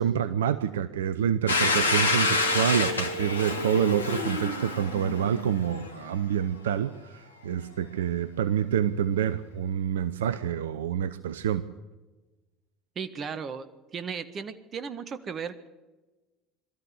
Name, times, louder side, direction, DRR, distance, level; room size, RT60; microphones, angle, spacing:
voice 1, 0.0-11.7, right 9 dB, 75° right, 13 dB, 0.7 m, -27 dB
Domestic sounds home sounds, 1.5-6.1, left 3 dB, 90° left, 1.6 m, -27 dB
voice 2, 12.9-15.7, right 6 dB, 40° right, 11 dB, 1.7 m, -36 dB
22.5 x 13.5 x 9.7 m, 1.2 s
hypercardioid pair, 65°, 0 cm